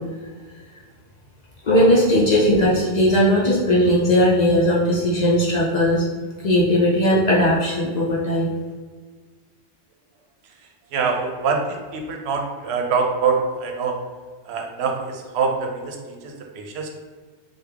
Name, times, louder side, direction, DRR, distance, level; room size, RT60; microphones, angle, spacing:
voice 1, 1.6-6.0 6.4-8.5, equal, 50° left, -5 dB, 0.5 m, -18 dB
voice 2, 10.9-14.0 14.5-16.9, right 5 dB, 75° right, 2 dB, 0.8 m, -24 dB
3.3 x 2.2 x 3.4 m, 1.5 s
omnidirectional pair, 1.1 m